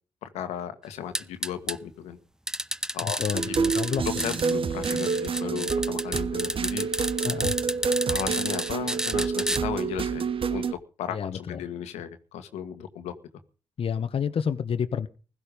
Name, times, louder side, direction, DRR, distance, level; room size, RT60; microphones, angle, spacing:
voice 1, 0.2-2.2 2.9-3.4 4.0-6.9 8.1-10.2 10.5-13.1, left 9 dB, 90° left, 9 dB, 1.7 m, -35 dB
sound 1, 1.1-1.8 2.5-4.5 4.8-9.6, right 1 dB, 5° right, 0.8 m, -30 dB
voice 2, 3.0-4.1 7.2-7.6 11.1-11.6 13.8-15.1, left 7 dB, 60° left, 10 dB, 1.1 m, -29 dB
sound 2, 3.3-10.7, right 5 dB, 55° right, 1.3 m, -28 dB
16.0 x 13.5 x 5.3 m, 0.36 s
supercardioid pair, 55°, 11 cm